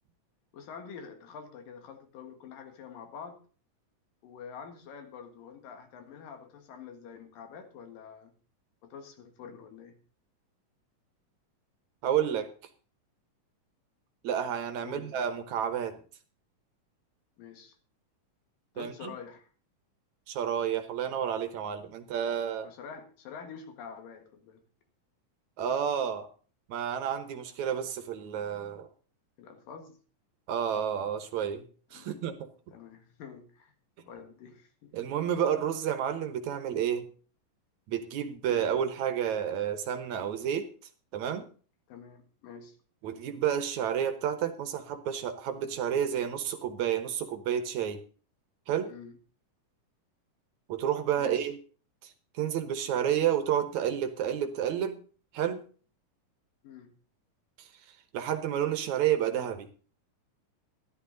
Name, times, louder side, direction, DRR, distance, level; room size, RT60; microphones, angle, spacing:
voice 1, 0.5-3.4 4.2-8.3 8.8-9.9 14.8-15.2 17.4-17.7 18.7-19.5 22.6-24.6 27.6-27.7 29.4-30.0 31.9-32.3 32.7-33.7 34.1-34.9 38.5-38.7 41.9-42.8 48.9-49.2 51.2-51.5 56.6-56.9, left 6 dB, 90° left, 6 dB, 3.4 m, -47 dB
voice 2, 12.0-12.5 14.2-16.0 18.8-19.1 20.3-22.7 25.6-26.3 26.7-28.9 30.5-31.6 31.9-32.5 34.9-37.1 37.9-40.7 41.1-41.5 43.0-48.0 48.7-48.9 50.7-51.6 52.0-55.0 55.3-55.6 57.6-57.7 58.1-59.7, right 9 dB, 70° right, 8 dB, 2.2 m, -30 dB
13.5 x 11.5 x 3.9 m, 0.39 s
omnidirectional pair, 3.8 m